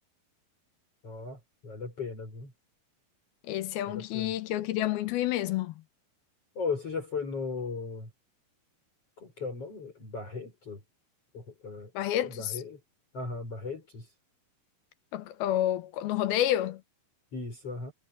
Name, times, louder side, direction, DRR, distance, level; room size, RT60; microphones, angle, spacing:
voice 1, 1.0-2.5 3.9-4.3 6.6-8.1 9.2-10.8 11.3-11.9 12.2-12.8 13.1-14.1 17.3-17.9, left 4 dB, 40° left, 7.2 m, -37 dB
voice 2, 3.4-5.7 11.9-12.6 15.1-16.8, left 13 dB, 85° left, 2.9 m, -29 dB
omnidirectional pair, 4.3 m